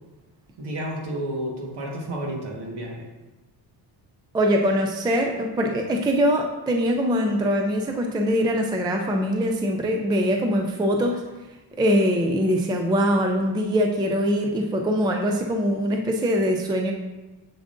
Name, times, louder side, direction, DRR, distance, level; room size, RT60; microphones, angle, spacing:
voice 1, 0.6-3.1, right 1 dB, 60° right, 0 dB, 1.6 m, -31 dB
voice 2, 4.3-11.2 11.8-16.9, equal, 10° right, 3 dB, 0.3 m, -22 dB
7.5 x 6.9 x 2.6 m, 1.1 s
cardioid pair, 155°, 46 cm